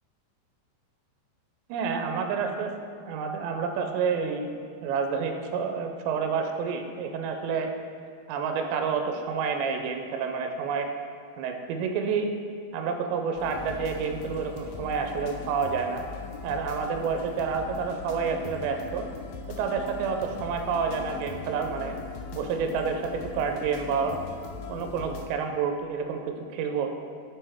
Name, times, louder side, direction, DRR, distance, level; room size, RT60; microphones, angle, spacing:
voice 1, 1.7-2.7 3.0-7.7 8.3-10.9 11.4-12.3 12.7-16.0 16.4-19.1 19.6-22.0 22.3-24.2 24.7-26.9, right 5 dB, 85° right, 5 dB, 2.8 m, -29 dB
sound 1, 13.4-25.3, left 5 dB, 85° left, 2.2 m, -40 dB
6.8 x 5.5 x 3.4 m, 2.3 s
omnidirectional pair, 5.1 m